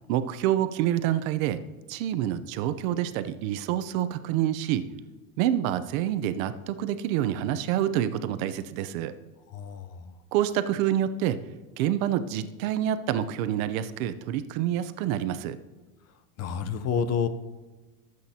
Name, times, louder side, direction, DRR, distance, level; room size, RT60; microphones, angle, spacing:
voice 1, 0.1-1.6 1.9-4.9 5.4-9.1 10.3-11.4 11.8-15.6, right 11 dB, 70° right, 12 dB, 0.8 m, -27 dB
voice 2, 9.5-10.1 16.4-17.3, left 6 dB, 35° left, 12 dB, 0.7 m, -29 dB
19.0 x 7.9 x 2.9 m, 1.2 s
supercardioid pair, 130°, 42 cm